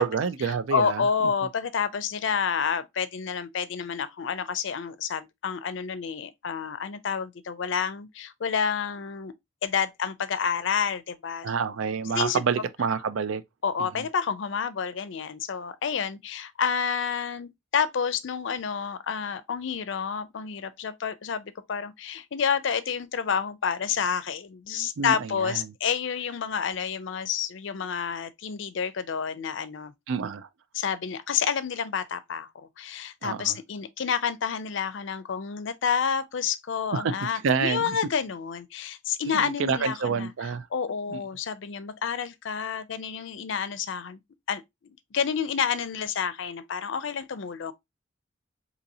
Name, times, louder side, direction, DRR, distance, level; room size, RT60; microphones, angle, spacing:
voice 1, 0.0-1.0 11.4-13.4 14.0-14.1 25.0-25.6 30.1-30.5 33.2-33.6 36.9-37.1 37.4-38.0 39.3-40.7 41.1-41.2, right 5 dB, 80° right, 0.4 m, -28 dB
voice 2, 0.7-9.3 9.6-11.5 12.2-12.4 13.6-29.9 30.7-32.5 32.8-40.3 40.7-44.2 44.5-44.6 45.1-47.7, left 6 dB, 70° left, 0.4 m, -29 dB
4.1 x 2.8 x 2.7 m
head